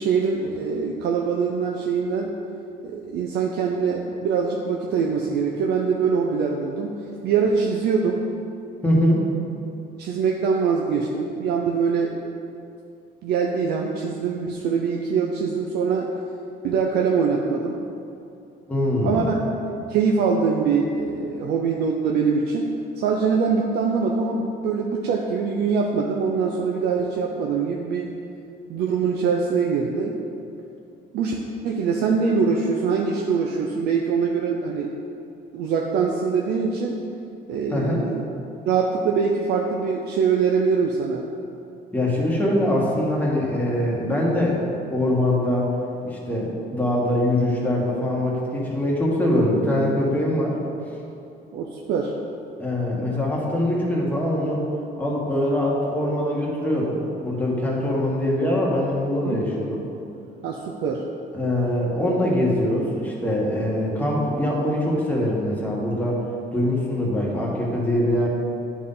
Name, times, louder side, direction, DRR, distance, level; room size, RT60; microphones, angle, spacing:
voice 1, 0.0-2.3 2.8-6.9 7.2-8.2 10.0-12.1 13.2-16.1 16.6-17.8 19.0-19.3 19.7-28.1 28.7-30.1 31.1-34.9 35.5-36.9 37.5-38.3 38.7-41.2 51.5-52.1 59.2-59.4 60.4-61.0, right 5 dB, 75° right, 0 dB, 0.6 m, -23 dB
voice 2, 8.8-9.3 18.7-19.2 37.7-38.0 41.9-45.7 46.0-50.6 52.6-54.7 55.0-59.8 61.3-66.2 66.5-68.3, left 1 dB, 10° left, -4 dB, 1.5 m, -23 dB
9.5 x 4.0 x 3.9 m, 2.6 s
cardioid pair, 110°, 17 cm